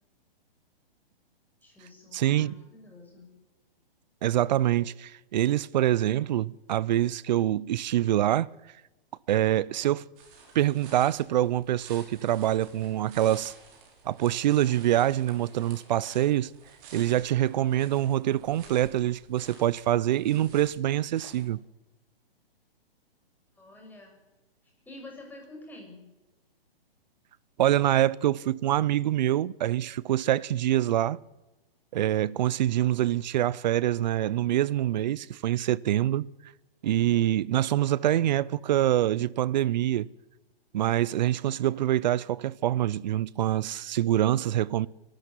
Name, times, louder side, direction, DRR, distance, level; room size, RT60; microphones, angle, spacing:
voice 1, 1.6-3.4 23.6-24.2 24.8-26.1, left 2 dB, 5° left, 6.3 m, -47 dB
voice 2, 2.1-2.6 4.2-8.5 9.3-10.0 10.5-13.5 14.0-16.5 16.9-21.6 27.6-31.2 31.9-36.3 36.8-40.1 40.7-44.9, right 12 dB, 45° right, 0.7 m, -25 dB
sound 1, 10.2-21.4, right 5 dB, 30° right, 5.5 m, -52 dB
25.5 x 13.0 x 9.8 m
hypercardioid pair, 145°, 30 cm